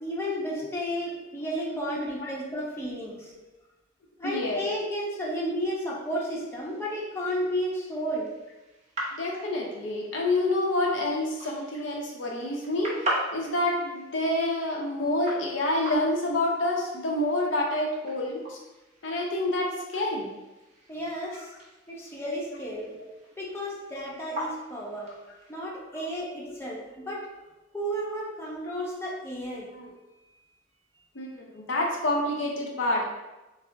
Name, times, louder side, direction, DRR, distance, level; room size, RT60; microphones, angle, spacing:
voice 1, 0.0-3.3 4.2-8.3 20.9-21.5 21.9-23.0 23.4-25.1 25.5-27.3 27.7-29.7, equal, 15° left, -5 dB, 0.7 m, -32 dB
voice 2, 4.2-4.6 9.2-18.6 19.0-20.3 21.3-21.4 25.0-25.1 29.6-29.9 31.1-33.0, left 1 dB, 70° left, -1 dB, 0.6 m, -28 dB
sound 1, 6.0-25.5, right 1 dB, 35° right, 0.8 m, -41 dB
6.0 x 2.0 x 2.5 m, 1.1 s
head